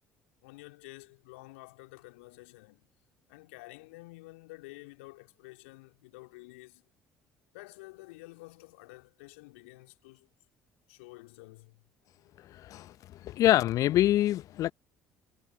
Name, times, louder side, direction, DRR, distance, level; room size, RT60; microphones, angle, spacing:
voice 1, 0.4-2.9 3.3-6.9 7.5-10.3 10.9-11.9, left 24 dB, 70° left, 3.2 m, -50 dB
voice 2, 12.5-12.9 13.2-14.7, left 13 dB, 50° left, 1.0 m, -25 dB
figure-of-eight pair, 55°, 7 cm